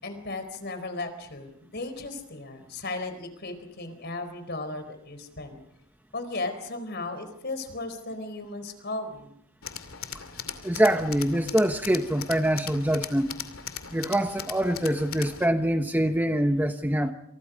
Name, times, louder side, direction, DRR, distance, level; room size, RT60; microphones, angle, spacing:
voice 1, 0.0-5.6 6.1-9.4, left 2 dB, 45° left, 9 dB, 4.4 m, -36 dB
Tools, 9.6-15.5, left 8 dB, 65° left, 2.5 m, -39 dB
voice 2, 10.6-13.3 13.9-17.1, right 1 dB, 10° right, 6 dB, 0.9 m, -24 dB
29.0 x 27.5 x 5.2 m, 0.72 s
head